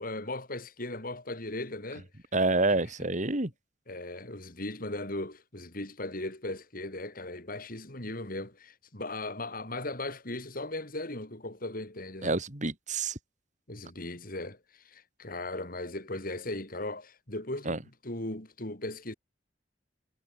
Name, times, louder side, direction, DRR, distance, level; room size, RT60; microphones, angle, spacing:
voice 1, 0.0-2.1 3.0-3.1 3.9-12.4 13.7-19.1, left 2 dB, 55° left, 5.3 m, -38 dB
voice 2, 2.3-3.5 12.2-13.2 17.7-17.8, right 2 dB, 45° right, 3.7 m, -28 dB
head